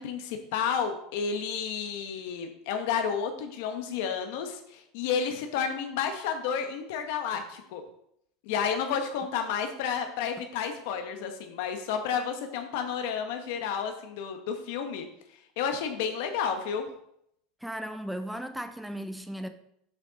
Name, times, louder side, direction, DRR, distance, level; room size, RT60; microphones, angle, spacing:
voice 1, 0.0-7.8 8.4-15.1 15.6-16.9, left 7 dB, 70° left, 1.0 m, -31 dB
voice 2, 17.6-19.5, equal, ahead, 0.5 m, -36 dB
6.3 x 6.1 x 3.9 m
supercardioid pair, 150°, 0 cm